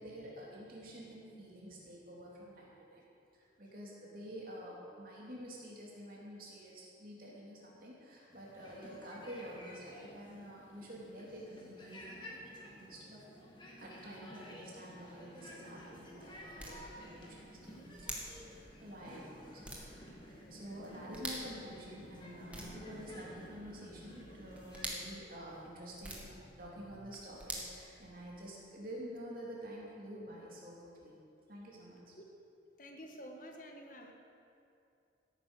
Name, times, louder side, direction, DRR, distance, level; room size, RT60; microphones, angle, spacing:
voice 1, 0.0-3.0 3.3-13.2 13.8-20.0 20.2-31.2 31.5-32.1, equal, 50° right, -4 dB, 3.5 m, -49 dB
sound 1, 8.3-24.9, equal, 25° left, 2.2 m, -53 dB
sound 2, 15.3-28.6, right 1 dB, 5° right, 1.9 m, -49 dB
voice 2, 32.8-34.1, equal, 45° left, 3 dB, 1.4 m, -49 dB
15.5 x 9.3 x 6.5 m, 2.6 s
head